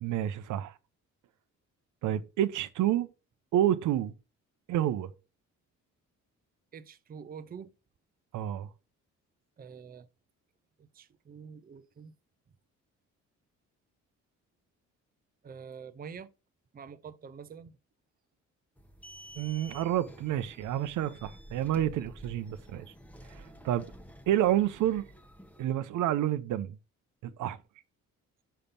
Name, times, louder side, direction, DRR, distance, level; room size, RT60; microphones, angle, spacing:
voice 1, 0.0-0.7 2.0-3.1 3.5-4.1 4.7-5.1 8.3-8.7 19.4-22.8 23.3-23.8 24.3-25.0 25.6-26.8 27.2-27.6, right 12 dB, 80° right, 0.7 m, -29 dB
voice 2, 6.7-7.7 9.6-10.1 10.8-12.1 15.4-16.3 16.7-17.8, right 6 dB, 30° right, 0.6 m, -46 dB
sound 1, 18.8-25.6, equal, 5° left, 0.9 m, -50 dB
5.7 x 5.3 x 5.4 m
cardioid pair, 90°, 30 cm